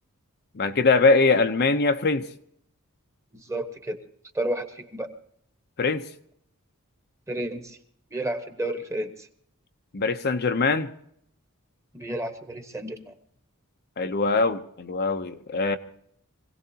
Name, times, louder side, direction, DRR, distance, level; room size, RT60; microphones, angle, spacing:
voice 1, 0.5-2.3 5.8-6.1 9.9-10.9 14.0-15.8, left 3 dB, 50° left, 7 dB, 0.7 m, -22 dB
voice 2, 3.5-4.0 4.3-5.1 7.3-7.8 8.1-9.3 11.9-13.1, right 1 dB, 15° right, 7 dB, 1.2 m, -31 dB
25.5 x 17.0 x 2.8 m, 0.69 s
head